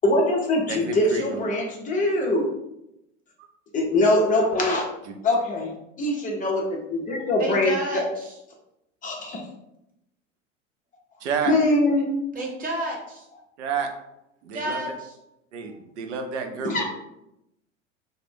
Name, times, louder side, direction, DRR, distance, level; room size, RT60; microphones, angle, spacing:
voice 1, 0.0-2.5 3.7-4.8 5.2-5.7 6.0-7.8 9.0-9.4 11.5-12.1 16.6-16.8, left 2 dB, 20° left, -1 dB, 0.5 m, -22 dB
voice 2, 0.7-1.4 5.1-5.2 11.2-11.5 13.6-13.9 14.4-14.8 15.5-16.8, right 6 dB, 65° right, 5 dB, 0.6 m, -30 dB
voice 3, 7.4-8.3 12.3-13.3 14.5-15.1, right 1 dB, 20° right, -1 dB, 0.8 m, -30 dB
2.4 x 2.1 x 3.5 m, 0.86 s
figure-of-eight pair, 80°, 38 cm